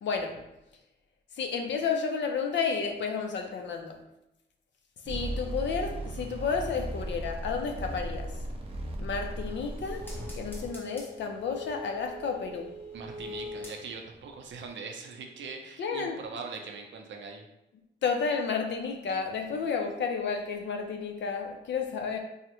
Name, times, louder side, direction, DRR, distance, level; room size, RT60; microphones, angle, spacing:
voice 1, 0.0-0.4 1.3-4.0 5.1-8.4 9.0-10.1 10.3-12.7 15.8-16.2 18.0-22.2, left 5 dB, 75° left, 4 dB, 0.5 m, -31 dB
sound 1, 5.0-10.7, right 1 dB, 30° right, 0.4 m, -37 dB
sound 2, 9.1-14.2 14.6-14.7, left 1 dB, 10° left, 0.6 m, -43 dB
voice 2, 12.9-17.5, right 4 dB, 80° right, 3 dB, 0.5 m, -41 dB
3.5 x 2.1 x 2.9 m, 0.92 s
wide cardioid pair, 165°, 19 cm